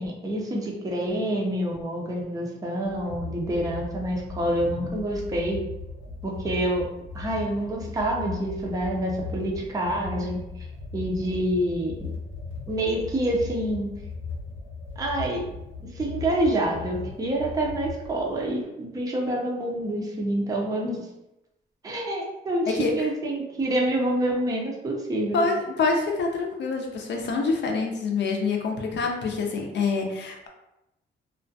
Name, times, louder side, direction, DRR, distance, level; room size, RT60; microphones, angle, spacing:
voice 1, 0.0-5.6 6.2-6.9 7.1-10.4 10.9-12.1 12.7-13.9 15.0-15.4 15.9-21.1 21.8-25.4, right 1 dB, 20° right, -2 dB, 0.5 m, -27 dB
sound 1, 2.8-18.5, left 4 dB, 80° left, 0.9 m, -38 dB
voice 2, 25.3-30.5, left 4 dB, 60° left, 2 dB, 0.5 m, -26 dB
2.4 x 2.1 x 2.6 m, 0.91 s
cardioid pair, 110°, 20 cm